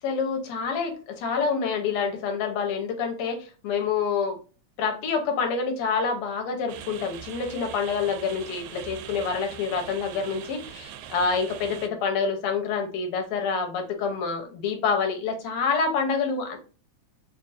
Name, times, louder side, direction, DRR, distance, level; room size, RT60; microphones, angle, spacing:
voice 1, 0.0-4.4 4.8-16.6, left 5 dB, 70° left, 4 dB, 2.0 m, -27 dB
sound 1, 6.7-11.9, right 10 dB, 85° right, 1.9 m, -42 dB
4.5 x 2.5 x 2.5 m, 0.37 s
omnidirectional pair, 3.4 m